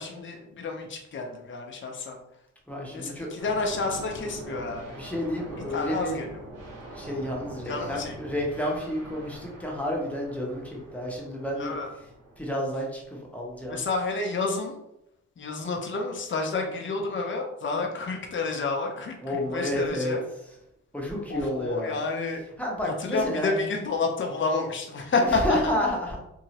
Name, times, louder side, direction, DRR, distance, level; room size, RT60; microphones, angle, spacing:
voice 1, 0.0-2.2 2.8-5.0 5.7-6.3 7.7-8.2 11.6-11.9 13.7-14.7 15.4-20.2 21.3-22.5 22.8-25.7, left 3 dB, 35° left, 3 dB, 0.7 m, -29 dB
voice 2, 2.7-3.3 5.0-6.2 6.9-11.7 12.4-13.8 19.2-20.1 20.9-22.0 22.6-23.5 25.2-26.2, left 1 dB, 5° left, -3 dB, 1.1 m, -30 dB
sound 1, 3.4-12.4, right 1 dB, 85° right, 1.1 m, -43 dB
2.7 x 2.7 x 2.9 m, 0.82 s
supercardioid pair, 55°, 32 cm